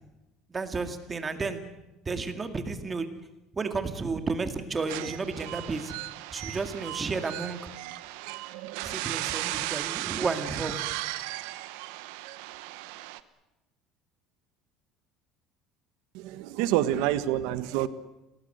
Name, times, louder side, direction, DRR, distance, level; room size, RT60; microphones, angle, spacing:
voice 1, 0.5-1.7 2.1-3.1 3.5-6.0 6.3-7.6 8.8-10.8, right 4 dB, 15° right, 8 dB, 2.1 m, -32 dB
sound 1, 4.9-13.2, right 17 dB, 90° right, 1.2 m, -36 dB
voice 2, 16.1-17.9, right 13 dB, 75° right, 14 dB, 1.4 m, -27 dB
28.5 x 18.5 x 8.0 m, 0.99 s
cardioid pair, 160°, 0 cm